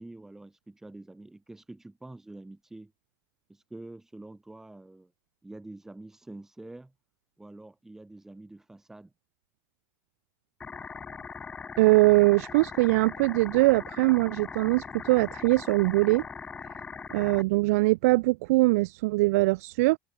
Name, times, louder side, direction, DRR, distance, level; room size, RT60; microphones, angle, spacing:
voice 1, 0.0-2.9 3.5-5.1 5.4-6.9 7.4-9.1, right 2 dB, 5° right, 4.8 m, -46 dB
sound 1, 10.6-17.4, left 5 dB, 10° left, 1.5 m, -41 dB
voice 2, 11.8-16.2 17.1-20.0, right 21 dB, 65° right, 1.0 m, -22 dB
supercardioid pair, 175°, 9 cm